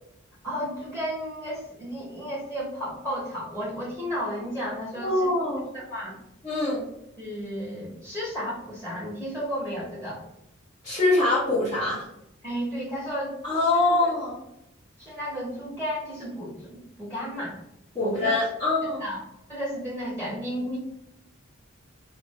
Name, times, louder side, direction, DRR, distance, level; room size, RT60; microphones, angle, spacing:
voice 1, 0.4-5.3 5.7-6.2 7.2-10.2 12.4-13.3 13.7-14.1 15.0-17.6 18.0-18.4 18.8-19.2 19.5-20.8, equal, 5° left, -8 dB, 1.2 m, -33 dB
voice 2, 5.0-5.7 6.4-6.8 10.8-12.1 13.4-14.4 17.9-19.0, left 2 dB, 20° left, -10 dB, 0.9 m, -24 dB
2.7 x 2.5 x 4.2 m, 0.83 s
head